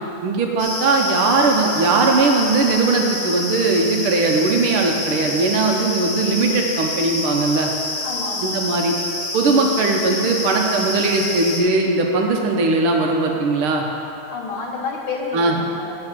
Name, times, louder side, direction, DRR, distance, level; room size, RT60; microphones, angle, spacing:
voice 1, 0.2-7.7 8.4-8.9 9.3-13.9 15.3-15.6, right 3 dB, 85° right, 1 dB, 1.8 m, -19 dB
sound 1, 0.6-11.6, left 1 dB, 25° left, 0.7 m, -27 dB
voice 2, 8.0-8.6 14.3-16.1, left 4 dB, 80° left, -2 dB, 2.1 m, -29 dB
9.8 x 4.8 x 7.3 m, 2.8 s
omnidirectional pair, 2.3 m